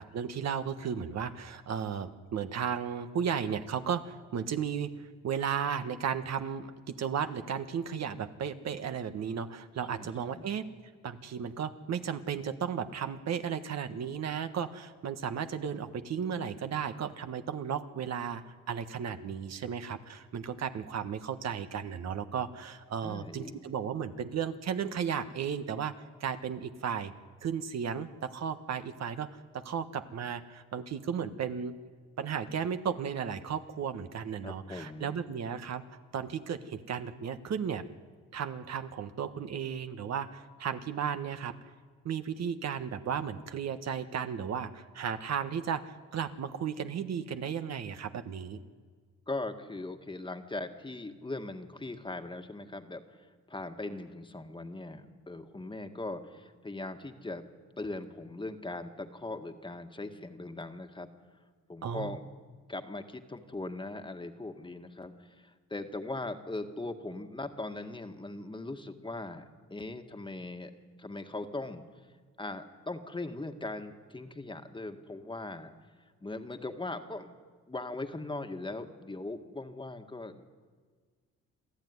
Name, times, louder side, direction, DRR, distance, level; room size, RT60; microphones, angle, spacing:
voice 1, 0.0-10.7 11.0-25.9 26.2-27.1 27.4-31.8 32.2-35.8 36.1-37.8 38.3-41.5 42.0-48.6 61.8-62.2, right 7 dB, 60° right, 9 dB, 1.4 m, -34 dB
voice 2, 9.9-10.5 23.0-23.6 34.4-35.2 49.3-57.5 57.8-61.1 61.7-62.2 62.7-69.5 69.7-70.7 71.0-72.1 72.4-75.7 76.2-77.3 77.7-80.5, left 2 dB, 15° left, 7 dB, 1.8 m, -40 dB
27.0 x 14.0 x 9.7 m, 1.5 s
cardioid pair, 90°, 30 cm